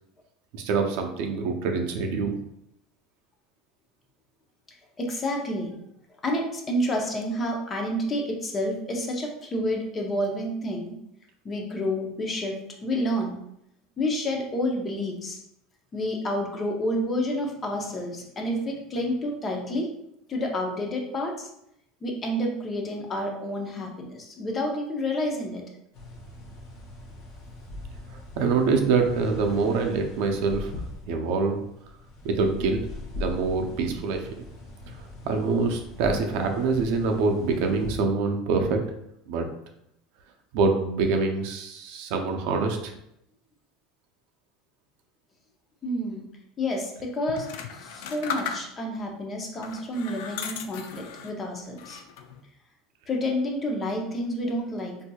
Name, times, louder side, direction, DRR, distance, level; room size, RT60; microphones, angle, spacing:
voice 1, 0.5-2.4 28.4-30.7 31.1-31.6 32.2-32.8 33.2-34.3 35.0-38.8 39.3-39.5 40.5-42.9, right 4 dB, 65° right, 4 dB, 0.6 m, -25 dB
voice 2, 5.0-5.8 6.2-10.9 11.4-13.4 14.0-15.4 15.9-19.9 20.3-21.5 22.0-25.6 45.8-46.3 46.6-52.0 53.1-55.0, left 1 dB, 20° left, 1 dB, 0.6 m, -29 dB
sound 1, 25.9-38.0, left 2 dB, 55° left, 0.9 m, -40 dB
sound 2, 47.3-49.0 49.6-51.4 51.8-52.4, left 6 dB, 70° left, 0.4 m, -36 dB
4.4 x 2.7 x 2.3 m, 0.78 s
supercardioid pair, 155°, 0 cm